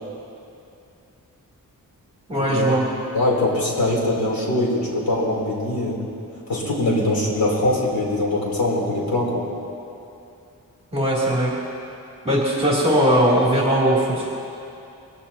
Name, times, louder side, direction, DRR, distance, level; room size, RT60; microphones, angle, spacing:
voice 1, 2.3-2.8 10.9-11.5 12.2-14.3, equal, 15° right, -6 dB, 3.1 m, -19 dB
voice 2, 3.1-6.1 6.5-9.4, left 1 dB, 80° left, -4 dB, 3.7 m, -22 dB
22.5 x 15.0 x 2.9 m, 2.7 s
wide cardioid pair, 130°, 35 cm